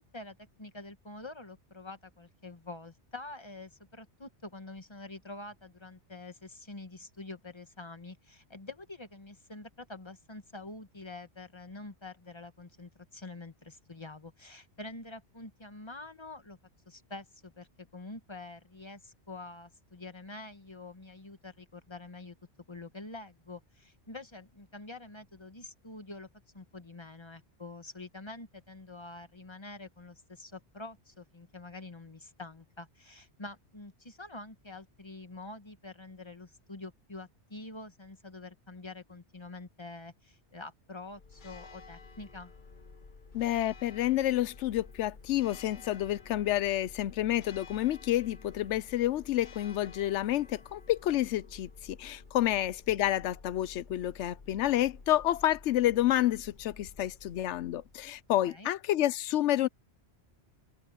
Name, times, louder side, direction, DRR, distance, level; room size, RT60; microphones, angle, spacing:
voice 1, 0.0-16.6 16.9-22.3 22.7-26.3 26.5-42.5 58.5-58.7, left 2 dB, 25° left, 1.4 m, -46 dB
Church bell, 41.1-58.3, left 4 dB, 45° left, 1.3 m, -52 dB
voice 2, 43.3-59.7, left 13 dB, 85° left, 0.9 m, -29 dB
omnidirectional pair, 1.2 m